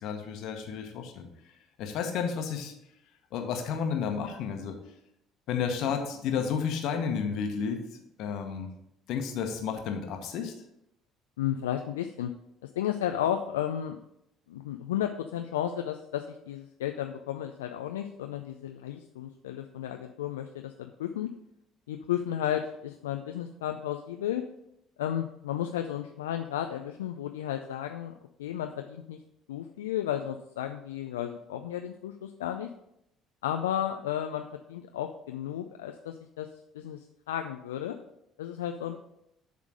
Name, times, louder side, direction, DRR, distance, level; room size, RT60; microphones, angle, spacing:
voice 1, 0.0-2.7 3.3-4.8 5.5-8.7 9.1-10.5, left 6 dB, 65° left, 5 dB, 1.1 m, -32 dB
voice 2, 11.4-12.3 12.8-14.0 14.5-21.3 21.9-24.4 25.0-28.1 28.4-29.2 29.5-32.7 33.4-36.5 36.7-38.0 38.4-39.0, left 10 dB, 80° left, 6 dB, 0.4 m, -33 dB
7.5 x 3.7 x 6.1 m, 0.81 s
hypercardioid pair, 55°, 0 cm